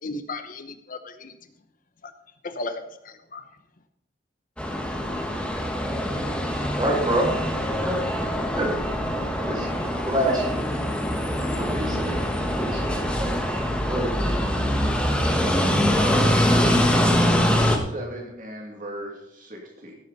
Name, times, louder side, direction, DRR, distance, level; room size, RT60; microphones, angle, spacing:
voice 1, 0.0-1.4 2.0-2.1 2.4-3.5, left 2 dB, 45° left, 9 dB, 0.9 m, -35 dB
sound 1, 4.6-17.8, equal, 5° left, 1.5 m, -24 dB
voice 2, 6.8-7.3 7.8-8.0 8.6-8.7 9.4-9.7 10.0-10.5 11.6-12.9 13.2-13.3 13.9-14.3, right 1 dB, 25° right, -3 dB, 5.8 m, -27 dB
voice 3, 15.9-19.9, right 1 dB, 45° right, -1 dB, 2.5 m, -36 dB
17.0 x 8.7 x 4.1 m, 0.82 s
head